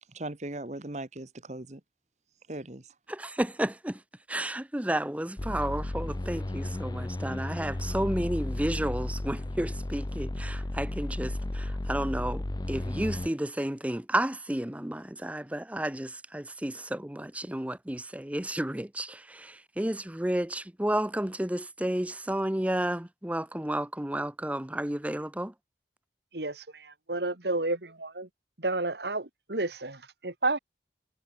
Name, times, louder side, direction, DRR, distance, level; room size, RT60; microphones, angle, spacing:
voice 1, 0.1-1.8 2.5-2.9, right 1 dB, 40° right, 1.4 m, -38 dB
voice 2, 3.1-4.0 4.3-25.5, right 1 dB, 10° right, 0.7 m, -32 dB
sound 1, 5.4-13.3, left 1 dB, 20° left, 0.5 m, -33 dB
voice 3, 26.3-28.3 28.6-30.6, right 2 dB, 70° right, 2.5 m, -31 dB
head